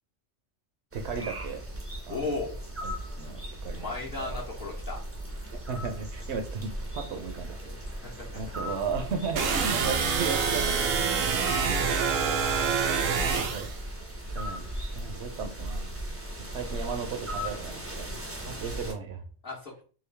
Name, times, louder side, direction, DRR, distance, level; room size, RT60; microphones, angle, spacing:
sound 1, 0.9-18.9, equal, 20° right, 0.4 m, -38 dB
voice 1, 0.9-1.6 2.1-2.3 2.8-3.9 4.2-4.4 5.5-7.8 8.3-12.0 13.0-13.7 14.3-14.7 14.9-15.9 16.4-18.2 18.5-19.2, right 5 dB, 65° right, 5 dB, 0.9 m, -36 dB
voice 2, 2.1-2.6 3.7-5.0 8.0-8.3 19.4-19.8, left 3 dB, 50° left, -5 dB, 1.0 m, -35 dB
sound 2, 9.4-13.8, right 5 dB, 90° right, 1.0 m, -26 dB
3.8 x 2.4 x 3.2 m, 0.39 s
omnidirectional pair, 1.3 m